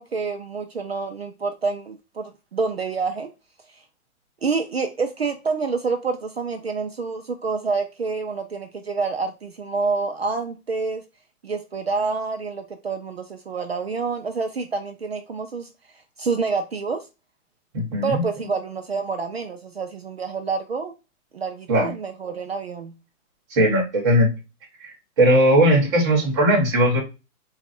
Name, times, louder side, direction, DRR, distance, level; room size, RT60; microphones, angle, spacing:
voice 1, 0.0-3.3 4.4-11.0 11.4-15.7 16.2-17.1 18.0-21.0 21.3-22.9, right 4 dB, 45° right, 0.4 m, -27 dB
voice 2, 17.7-18.2 21.7-21.9 23.5-24.3 24.8-27.0, equal, 20° right, 1.1 m, -18 dB
3.9 x 2.4 x 4.2 m
hypercardioid pair, 175°, 45 cm